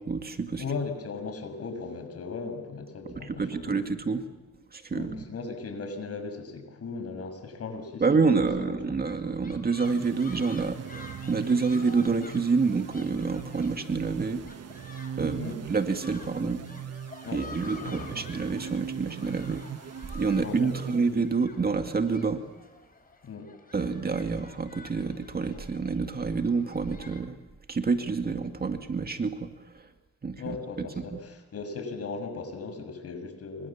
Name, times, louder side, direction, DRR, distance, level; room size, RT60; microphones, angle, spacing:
voice 1, 0.0-0.6 3.2-4.2 4.7-5.1 8.0-14.4 15.2-15.4 15.7-16.6 17.3-19.6 20.1-22.4 23.7-27.4 27.7-29.8 30.2-30.6, right 4 dB, 30° right, 6 dB, 2.1 m, -28 dB
voice 2, 0.6-3.8 4.9-8.8 15.4-15.6 17.2-18.3 20.4-21.1 23.2-23.5 30.4-33.7, left 4 dB, 50° left, 7 dB, 6.6 m, -37 dB
sound 1, 9.0-27.2, left 3 dB, 30° left, 5.2 m, -50 dB
sound 2, 9.8-21.6, right 8 dB, 55° right, 1.3 m, -40 dB
28.0 x 25.5 x 7.3 m, 1.1 s
cardioid pair, 90°, 30 cm